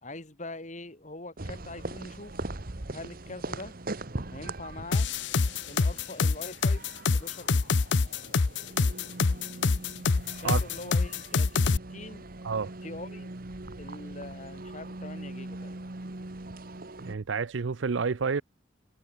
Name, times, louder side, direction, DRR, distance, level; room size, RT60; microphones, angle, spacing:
voice 1, 0.0-2.4 2.9-3.8 4.3-5.1 5.7-6.8 7.1-7.6 10.4-12.2 12.8-13.3 13.8-15.9, left 2 dB, 40° left, 3.4 m, -43 dB
sound 1, 1.4-17.2, right 2 dB, 50° right, 1.4 m, -41 dB
sound 2, 4.9-11.8, left 4 dB, 70° left, 0.7 m, -25 dB
voice 2, 17.0-18.4, right 5 dB, 85° right, 0.6 m, -29 dB
head